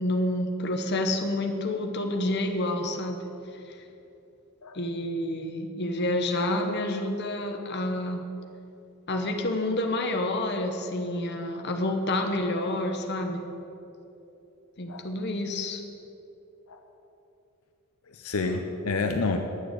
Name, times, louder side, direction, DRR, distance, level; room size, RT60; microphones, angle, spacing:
voice 1, 0.0-3.2 4.7-8.2 9.1-13.4 14.8-15.8, left 1 dB, 50° left, 4 dB, 1.1 m, -28 dB
voice 2, 18.1-19.4, left 3 dB, 75° left, 4 dB, 0.7 m, -29 dB
10.0 x 6.8 x 8.1 m, 2.9 s
head